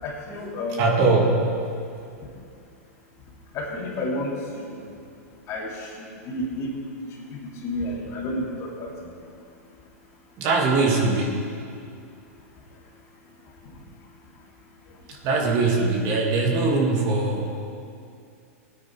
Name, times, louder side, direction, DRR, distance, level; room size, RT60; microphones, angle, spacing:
voice 1, 0.0-0.8 3.5-4.8 5.5-6.9 7.3-8.9, left 1 dB, 40° left, -2 dB, 2.9 m, -31 dB
voice 2, 0.8-1.5 10.4-11.5 15.1-17.6, right 3 dB, 45° right, 0 dB, 2.3 m, -21 dB
18.0 x 9.6 x 4.7 m, 2.5 s
hypercardioid pair, 120°, 8 cm